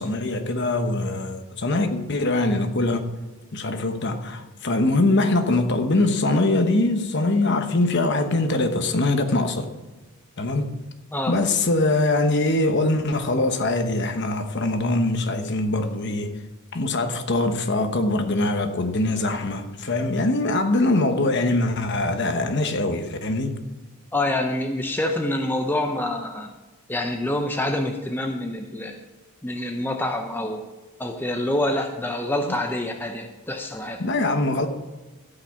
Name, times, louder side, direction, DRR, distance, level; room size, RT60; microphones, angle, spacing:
voice 1, 0.0-3.1 3.5-9.7 10.4-10.7 11.3-16.4 16.7-23.6 32.4-32.6 34.0-34.7, left 2 dB, 50° left, 1.1 m, -23 dB
voice 2, 24.1-26.5 26.9-29.0 29.4-30.6 31.0-34.0, left 1 dB, 10° left, 0.7 m, -26 dB
13.5 x 5.7 x 7.1 m
head